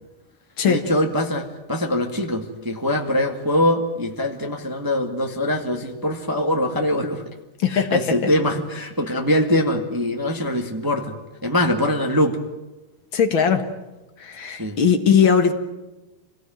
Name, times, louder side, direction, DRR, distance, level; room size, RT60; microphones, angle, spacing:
voice 1, 0.6-7.2 7.7-11.2 11.4-12.4 14.6-14.8, left 1 dB, 15° right, 3 dB, 0.7 m, -23 dB
voice 2, 7.6-8.0 13.1-13.7 14.2-15.5, left 7 dB, 45° left, 7 dB, 1.8 m, -19 dB
26.5 x 18.0 x 9.1 m, 1.1 s
omnidirectional pair, 4.0 m